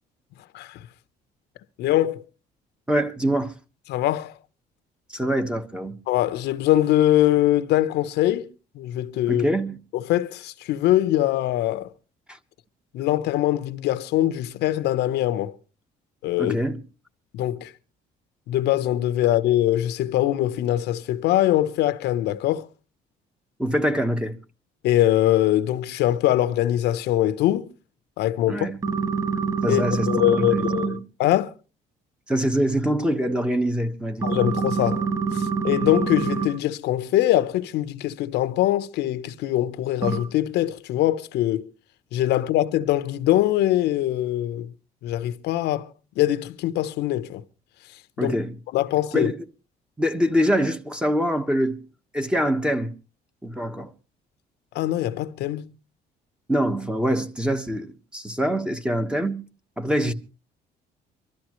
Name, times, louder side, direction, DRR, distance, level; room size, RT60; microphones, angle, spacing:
voice 1, 1.8-2.2 3.9-4.4 6.1-8.5 8.7-9.5 9.9-11.9 12.9-15.6 16.2-16.6 17.3-17.7 18.5-22.7 24.8-27.7 28.2-28.7 29.7-31.5 34.2-35.1 35.3-41.7 42.1-44.7 45.0-45.9 46.2-47.4 48.2-48.4 48.7-49.3 54.7-55.7, left 13 dB, 80° left, 1.0 m, -22 dB
voice 2, 2.9-3.5 5.1-6.0 9.3-9.8 12.3-12.4 16.4-16.8 23.6-24.4 28.5-28.8 29.6-30.1 30.3-31.0 32.3-34.3 48.2-48.6 49.1-49.4 50.0-51.8 52.1-52.9 53.4-53.9 56.5-59.4 59.8-60.1, equal, 5° right, 1.3 m, -24 dB
sound 1, 28.8-30.9 34.2-36.5 40.0-40.2, right 5 dB, 20° right, 4.7 m, -25 dB
24.5 x 13.0 x 3.1 m
cardioid pair, 110°, 17 cm